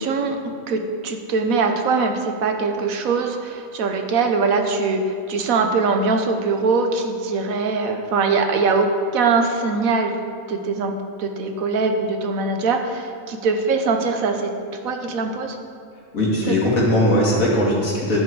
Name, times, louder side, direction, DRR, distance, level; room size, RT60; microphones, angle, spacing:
voice 1, 0.0-10.2 10.5-14.5 14.8-15.6 16.5-16.6, right 4 dB, 75° right, 5 dB, 1.3 m, -22 dB
voice 2, 16.1-18.2, left 1 dB, 70° left, -5 dB, 2.6 m, -19 dB
10.5 x 7.5 x 4.8 m, 2.4 s
omnidirectional pair, 1.5 m